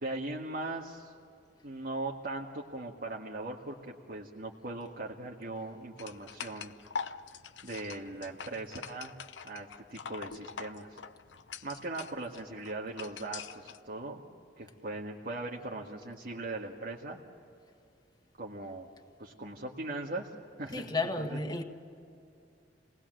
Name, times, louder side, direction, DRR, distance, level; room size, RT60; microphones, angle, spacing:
voice 1, 0.0-1.1 1.6-6.7 7.6-9.2 9.4-11.0 11.6-14.2 14.6-17.2 18.4-18.9 19.2-20.3 20.6-20.9 21.2-21.4, right 2 dB, 55° right, 1.7 m, -39 dB
sound 1, 6.0-13.8, left 6 dB, 90° left, 0.8 m, -44 dB
voice 2, 20.7-21.6, left 3 dB, 25° left, 1.6 m, -32 dB
28.5 x 20.0 x 7.7 m
head